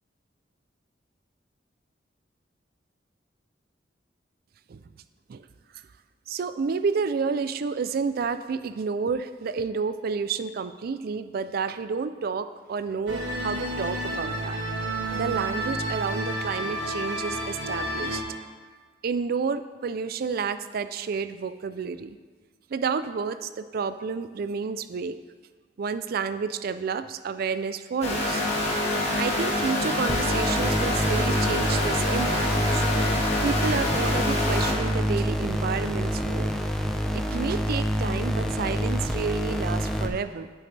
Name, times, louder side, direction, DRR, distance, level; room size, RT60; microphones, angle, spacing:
voice 1, 6.3-14.6 15.1-18.2 19.0-22.2 22.7-25.2 25.8-28.4 29.2-32.8 33.4-36.5 37.1-40.5, right 5 dB, 55° right, 12 dB, 0.4 m, -30 dB
sound 1, 13.1-18.2, right 1 dB, 75° right, 1.1 m, -30 dB
sound 2, 28.0-34.7, left 1 dB, 35° left, 1.8 m, -26 dB
sound 3, 30.1-40.1, equal, 5° left, 0.6 m, -27 dB
8.4 x 7.9 x 3.3 m, 1.5 s
head